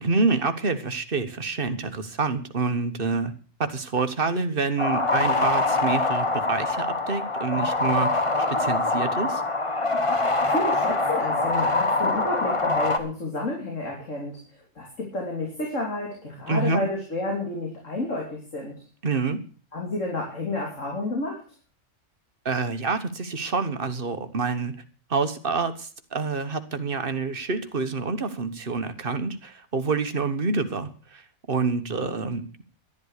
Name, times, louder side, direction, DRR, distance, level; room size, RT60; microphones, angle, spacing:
voice 1, 0.0-3.3 3.6-9.4 16.5-16.8 19.0-19.4 22.4-24.7 25.1-32.6, right 4 dB, 40° right, 10 dB, 1.5 m, -27 dB
sound 1, 4.8-13.0, left 2 dB, 25° left, 1.5 m, -24 dB
voice 2, 10.5-18.7 19.7-21.4, left 2 dB, 65° left, 0 dB, 3.8 m, -30 dB
12.5 x 11.5 x 6.6 m, 0.40 s
omnidirectional pair, 1.4 m